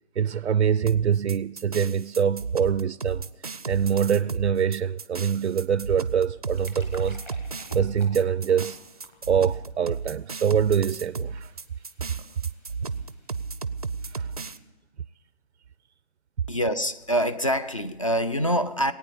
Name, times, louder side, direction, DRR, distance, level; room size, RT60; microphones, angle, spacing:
voice 1, 0.2-3.3 3.7-7.3 7.7-8.8 9.3-11.5 14.1-14.3, right 8 dB, 90° right, 0.5 m, -24 dB
sound 1, 0.9-14.6, right 4 dB, 35° right, 0.4 m, -34 dB
sound 2, 6.4-13.8, left 1 dB, 10° left, 0.9 m, -53 dB
voice 2, 16.5-18.9, equal, 30° left, 0.4 m, -25 dB
19.0 x 9.1 x 8.2 m
figure-of-eight pair, 160°, 33 cm